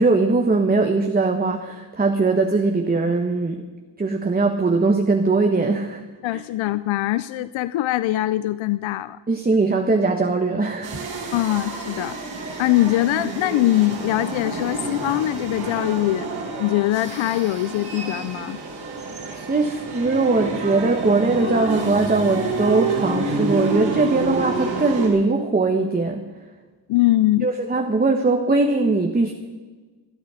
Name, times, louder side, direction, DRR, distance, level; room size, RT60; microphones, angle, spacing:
voice 1, 0.0-3.6 4.0-6.0 6.3-6.4 9.3-11.3 19.3-26.2 27.4-29.3, right 3 dB, 20° right, 4 dB, 1.1 m, -20 dB
voice 2, 6.2-9.2 11.3-12.2 12.6-16.3 16.6-18.6 26.9-27.5, left 16 dB, 85° left, 14 dB, 0.6 m, -22 dB
sound 1, 10.8-25.1, right 3 dB, 80° right, 4.9 m, -29 dB
26.5 x 9.0 x 5.0 m, 1.3 s
cardioid pair, 120°, 46 cm